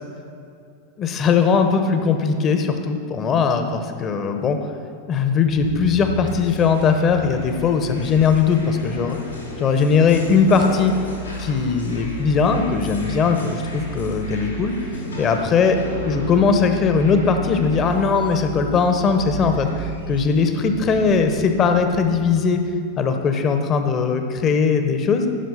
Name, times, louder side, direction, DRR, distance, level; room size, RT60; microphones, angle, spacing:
voice 1, 1.0-4.6 5.1-9.2 9.6-10.9 11.5-14.7 15.2-15.8 16.0-22.6 23.0-25.3, left 5 dB, 30° left, 6 dB, 0.9 m, -19 dB
sound 1, 5.5-22.3, equal, 80° left, 3.1 m, -33 dB
15.5 x 5.9 x 5.6 m, 2.4 s
figure-of-eight pair, 90°, 0 cm